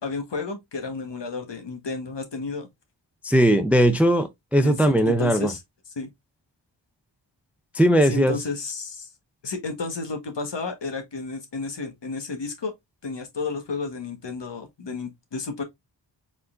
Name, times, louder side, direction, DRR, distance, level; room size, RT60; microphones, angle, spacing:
voice 1, 0.0-2.7 4.6-5.6 6.0-6.1 8.0-9.1 9.4-12.7 13.0-15.6, left 4 dB, 65° left, 1.4 m, -32 dB
voice 2, 3.2-5.5 7.7-8.3, right 1 dB, 5° right, 0.5 m, -19 dB
4.6 x 3.9 x 2.5 m
wide cardioid pair, 100°, 46 cm